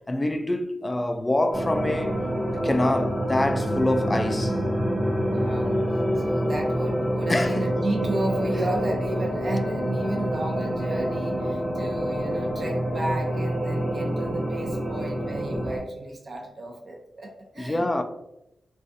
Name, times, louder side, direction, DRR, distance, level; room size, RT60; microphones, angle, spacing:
voice 1, 0.1-2.2 2.5-4.6 7.3-7.7 12.0-12.1 17.6-18.0, left 1 dB, 25° left, 0.3 m, -25 dB
sound 1, 1.5-15.8, equal, 20° right, 0.9 m, -27 dB
voice 2, 5.3-17.9, right 1 dB, 55° right, 0.7 m, -33 dB
2.4 x 2.3 x 2.6 m
cardioid pair, 65°, 0 cm